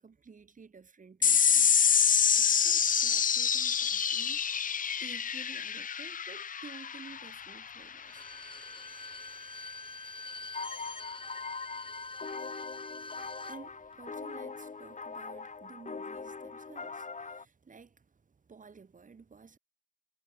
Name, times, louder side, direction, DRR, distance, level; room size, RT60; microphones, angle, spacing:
voice 1, 0.0-4.4 5.0-8.3 13.2-19.6, right 5 dB, 75° right, 7.9 m, -53 dB
sound 1, 1.2-8.0, left 7 dB, 80° left, 0.7 m, -27 dB
Bowed string instrument, 8.0-13.6 13.9-14.0, left 3 dB, 40° left, 5.0 m, -45 dB
sound 2, 10.5-17.5, left 4 dB, 60° left, 4.7 m, -42 dB
cardioid pair, 45°, 14 cm